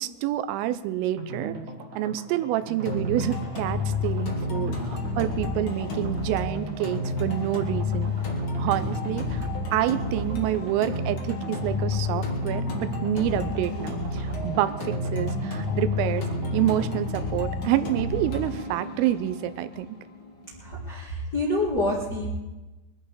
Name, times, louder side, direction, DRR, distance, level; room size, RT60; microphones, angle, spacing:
voice 1, 0.0-1.5 2.0-8.1 8.6-16.3 16.5-20.0, right 13 dB, 85° right, 13 dB, 3.3 m, -28 dB
sound 1, 1.2-19.8 20.1-20.2 20.4-20.5, right 3 dB, 50° right, 2.4 m, -41 dB
sound 2, 2.8-20.8, left 3 dB, 55° left, 1.4 m, -30 dB
voice 2, 20.6-22.3, left 1 dB, 85° left, -5 dB, 0.8 m, -27 dB
22.5 x 11.0 x 5.0 m, 1.1 s
omnidirectional pair, 5.8 m